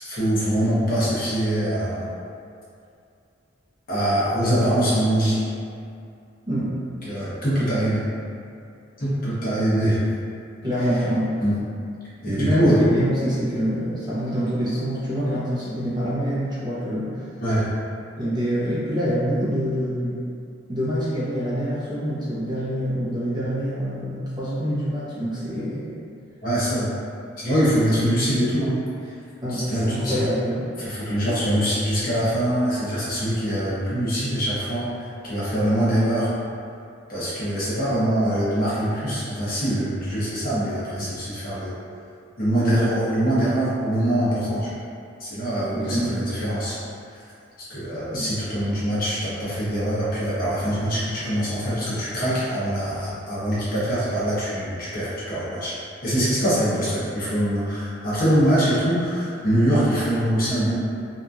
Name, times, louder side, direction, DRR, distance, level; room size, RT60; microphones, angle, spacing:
voice 1, 0.0-2.1 3.9-5.4 6.6-6.7 7.1-8.1 9.0-10.0 11.4-11.6 12.2-12.8 17.4-17.7 26.4-26.9 27.4-28.8 29.5-30.2 30.8-36.3 37.1-41.7 42.4-44.7 45.2-46.8 47.7-55.8 56.0-60.8, equal, 50° left, -10 dB, 0.9 m, -23 dB
voice 2, 10.6-11.4 12.3-17.2 18.1-20.2 20.7-25.9 29.4-30.8 45.7-46.1 48.1-48.3, equal, 25° right, -10 dB, 0.6 m, -26 dB
2.8 x 2.5 x 2.3 m, 2.4 s
head